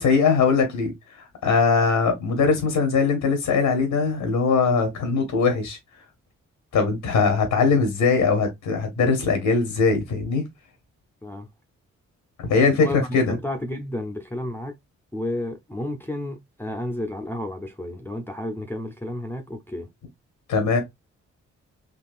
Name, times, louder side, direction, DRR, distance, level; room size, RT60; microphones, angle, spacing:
voice 1, 0.0-5.8 6.7-10.4 12.4-13.3 20.5-20.8, left 4 dB, 85° left, 1.0 m, -21 dB
voice 2, 12.8-14.7 15.1-19.9, left 1 dB, 5° left, 0.6 m, -31 dB
3.8 x 2.3 x 2.5 m
supercardioid pair, 50°, 30 cm